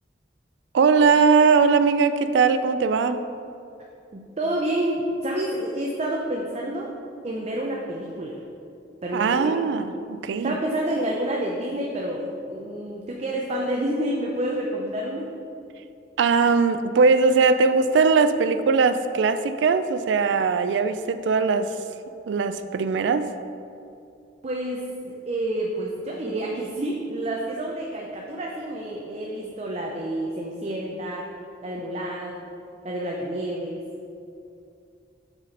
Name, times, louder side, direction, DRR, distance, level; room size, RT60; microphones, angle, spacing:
voice 1, 0.7-3.2 9.1-10.5 16.2-21.7 22.3-23.3, right 5 dB, 80° right, 11 dB, 0.3 m, -20 dB
voice 2, 4.1-6.9 7.2-8.4 9.0-9.5 10.4-15.3 24.4-31.3 31.6-32.5 32.8-33.8, right 1 dB, 35° right, -1 dB, 0.6 m, -29 dB
7.1 x 4.1 x 5.2 m, 2.6 s
head